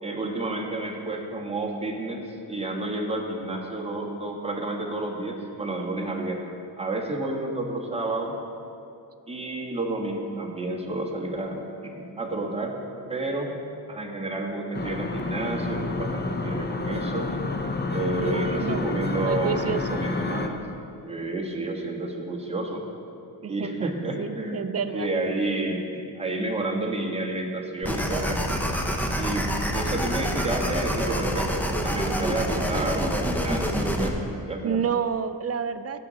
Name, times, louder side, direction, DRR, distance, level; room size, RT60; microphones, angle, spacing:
voice 1, 0.0-6.5 6.8-8.3 9.3-12.8 13.1-13.5 13.9-17.3 17.9-20.7 21.0-22.8 23.5-28.6 29.2-34.2 34.5-34.8, right 2 dB, 15° right, -1 dB, 1.5 m, -30 dB
sound 1, 14.7-20.5, left 3 dB, 25° left, 0.7 m, -29 dB
voice 2, 18.2-18.9 19.2-20.0 23.4-25.1 34.6-36.0, right 7 dB, 40° right, 12 dB, 0.4 m, -29 dB
sound 2, 27.8-34.1, equal, 5° left, 0.9 m, -27 dB
16.5 x 6.3 x 4.1 m, 2.6 s
cardioid pair, 95°, 41 cm